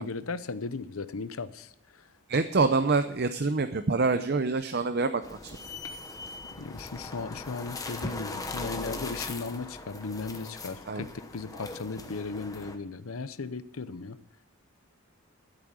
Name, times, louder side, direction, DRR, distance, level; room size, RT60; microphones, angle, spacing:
voice 1, 0.0-1.7 6.6-14.2, left 4 dB, 75° left, 14 dB, 0.7 m, -36 dB
voice 2, 2.3-5.6 10.9-11.1, right 3 dB, 45° right, 9 dB, 0.6 m, -26 dB
sound 1, 5.2-12.8, left 2 dB, 15° left, 1.0 m, -40 dB
14.0 x 8.4 x 6.3 m, 0.74 s
head